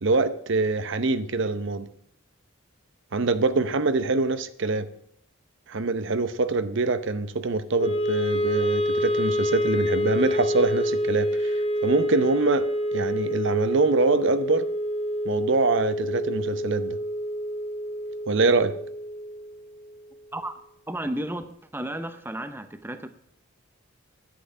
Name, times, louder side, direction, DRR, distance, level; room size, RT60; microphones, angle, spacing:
voice 1, 0.0-1.9 3.1-4.9 5.7-12.7 12.9-14.7 15.3-17.0 18.3-18.7, right 3 dB, 60° right, 12 dB, 0.7 m, -24 dB
Wind instrument woodwind instrument, 7.8-20.0, equal, 30° left, 0.9 m, -27 dB
voice 2, 20.9-21.4 21.7-23.1, right 1 dB, 10° right, 9 dB, 0.7 m, -32 dB
10.5 x 7.8 x 8.6 m, 0.72 s
head